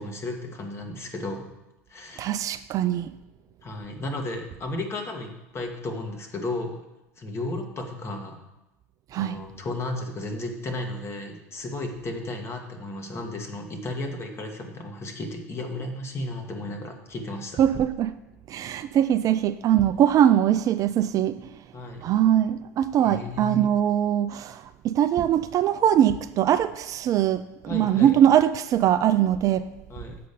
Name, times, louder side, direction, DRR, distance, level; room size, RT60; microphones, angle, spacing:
voice 1, 0.0-1.5 1.9-2.3 3.6-6.8 7.2-8.4 9.1-17.6 21.7-22.0 23.0-23.7 27.7-28.1 29.9-30.2, left 2 dB, 30° left, 3 dB, 1.7 m, -34 dB
voice 2, 2.2-3.1 9.1-9.4 17.6-18.1 18.5-21.5 22.0-29.7, right 10 dB, 40° right, 11 dB, 0.4 m, -22 dB
7.6 x 5.4 x 6.7 m, 0.95 s
hypercardioid pair, 85°, 9 cm